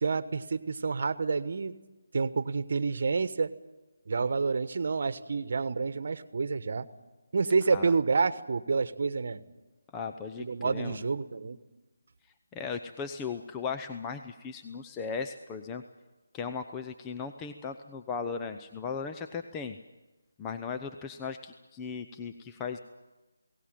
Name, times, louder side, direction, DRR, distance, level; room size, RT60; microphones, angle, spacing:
voice 1, 0.0-1.7 2.1-3.5 4.1-6.9 7.3-9.4 10.4-11.6, right 4 dB, 55° right, 14 dB, 1.2 m, -28 dB
voice 2, 9.9-11.0 12.5-15.8 16.3-19.8 20.4-22.8, left 5 dB, 15° left, 6 dB, 0.7 m, -37 dB
21.5 x 18.0 x 9.0 m, 1.1 s
figure-of-eight pair, 160°, 0 cm